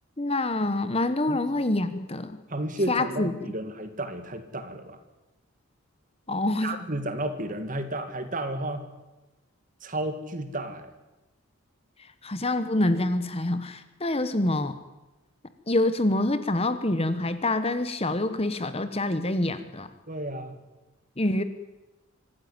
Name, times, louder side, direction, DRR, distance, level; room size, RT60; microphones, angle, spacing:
voice 1, 0.2-2.4 2.9-3.3 6.3-6.8 12.2-14.7 15.7-19.9 21.2-21.4, left 2 dB, 25° left, 11 dB, 1.1 m, -26 dB
voice 2, 2.5-5.0 6.6-8.9 9.8-10.9 20.1-20.6, right 1 dB, 35° right, 8 dB, 2.2 m, -32 dB
25.5 x 14.5 x 9.7 m, 1.1 s
head